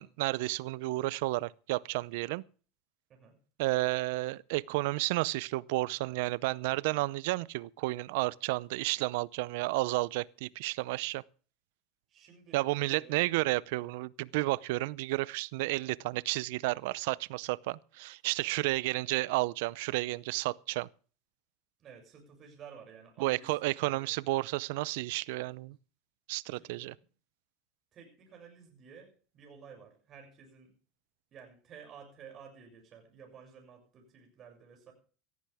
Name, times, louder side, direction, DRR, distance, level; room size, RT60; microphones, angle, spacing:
voice 1, 0.0-2.4 3.6-11.2 12.5-20.9 23.2-25.8 26.3-26.9, right 20 dB, 75° right, 0.6 m, -32 dB
voice 2, 12.1-13.3 21.8-24.1 26.5-27.1 27.9-30.7 31.3-34.9, right 6 dB, 40° right, 6.8 m, -53 dB
18.0 x 14.5 x 3.5 m
supercardioid pair, 105°, 0 cm